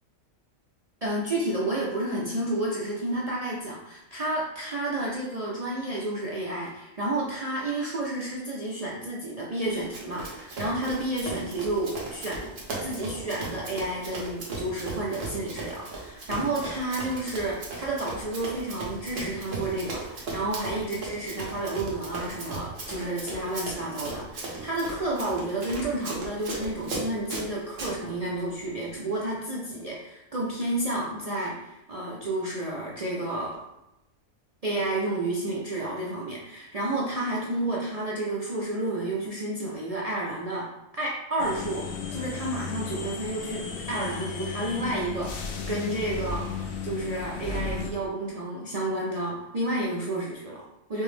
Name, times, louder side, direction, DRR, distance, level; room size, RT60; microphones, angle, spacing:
voice 1, 1.0-12.5 12.8-33.6 34.6-46.5 46.8-51.0, right 1 dB, 70° right, -5 dB, 0.3 m, -31 dB
Run, 9.9-27.9, right 2 dB, 50° right, 1.1 m, -37 dB
sound 1, 41.4-47.9, left 5 dB, 80° left, 1.0 m, -34 dB
5.3 x 2.1 x 3.2 m, 0.91 s
omnidirectional pair, 1.4 m